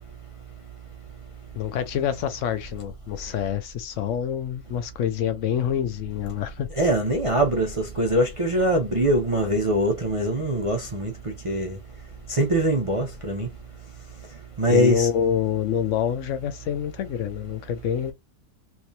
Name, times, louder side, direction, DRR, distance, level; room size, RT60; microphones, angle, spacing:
voice 1, 1.5-6.7 14.7-18.1, left 9 dB, 60° left, 0.8 m, -27 dB
voice 2, 6.7-11.8 12.3-13.5 14.6-15.1, right 1 dB, 45° right, 0.4 m, -23 dB
3.4 x 3.2 x 2.7 m
omnidirectional pair, 1.8 m